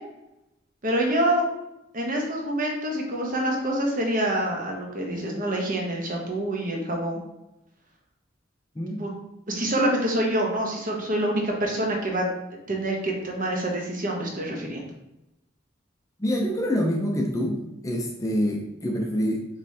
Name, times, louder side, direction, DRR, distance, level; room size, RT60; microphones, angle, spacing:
voice 1, 0.8-1.4 1.9-7.2 9.0-9.1 9.5-12.3 12.7-14.8, right 1 dB, 45° right, 0 dB, 0.9 m, -26 dB
voice 2, 8.8-9.1 16.2-19.5, equal, 15° left, 0 dB, 0.5 m, -26 dB
5.4 x 3.1 x 2.7 m, 0.89 s
head